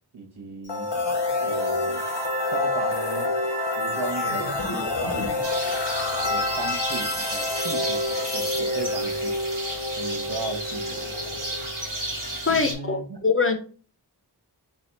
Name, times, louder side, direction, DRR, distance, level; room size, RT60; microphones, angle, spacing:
voice 1, 0.1-0.9 1.4-2.0 2.5-3.3 3.8-4.6 5.0-5.3 5.6-5.8 6.3-9.4 10.0-11.4 12.5-13.2, right 3 dB, 70° right, 0.9 m, -36 dB
sound 1, 0.6-12.5, left 2 dB, 90° left, 0.9 m, -28 dB
sound 2, 5.4-12.7, right 1 dB, 50° right, 1.1 m, -33 dB
voice 2, 12.5-13.6, left 4 dB, 30° left, 0.5 m, -23 dB
3.3 x 2.3 x 3.9 m
wide cardioid pair, 45°, 42 cm